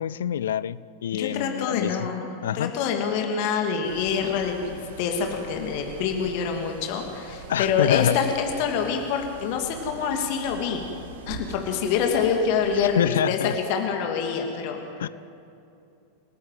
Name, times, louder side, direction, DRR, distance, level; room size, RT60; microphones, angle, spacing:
voice 1, 0.0-2.1 2.4-2.7 7.5-8.2 12.8-13.5 15.0-15.1, left 10 dB, 60° left, 0.5 m, -26 dB
voice 2, 1.1-10.8 11.3-15.1, left 6 dB, 45° left, 2.7 m, -26 dB
Larger Car Park, 3.8-13.1, right 5 dB, 60° right, 1.8 m, -43 dB
29.0 x 18.0 x 7.7 m
figure-of-eight pair, 90°, 0 cm